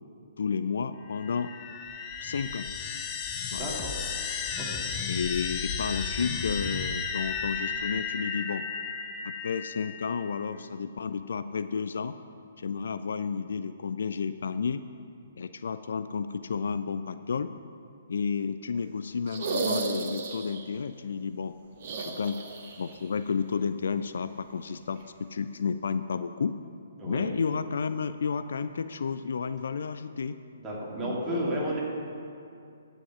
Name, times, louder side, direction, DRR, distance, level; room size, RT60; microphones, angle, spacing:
voice 1, 0.4-1.5 2.2-2.7 3.5-3.7 5.1-8.7 9.2-12.2 12.6-14.8 15.4-17.5 18.1-21.6 22.0-22.4 22.8-26.6 27.0-30.4 31.0-31.8, left 6 dB, 55° left, 12 dB, 0.3 m, -31 dB
sound 1, 1.1-10.4, left 6 dB, 25° left, 0.7 m, -34 dB
voice 2, 3.6-3.9 4.7-4.8 27.0-27.3 30.6-31.8, right 1 dB, 10° right, -6 dB, 2.5 m, -32 dB
sound 2, 19.3-20.7 21.8-23.0 23.2-23.3 25.0-25.1, right 3 dB, 40° right, 1.2 m, -33 dB
9.7 x 7.9 x 5.8 m, 2.5 s
figure-of-eight pair, 125°, 0 cm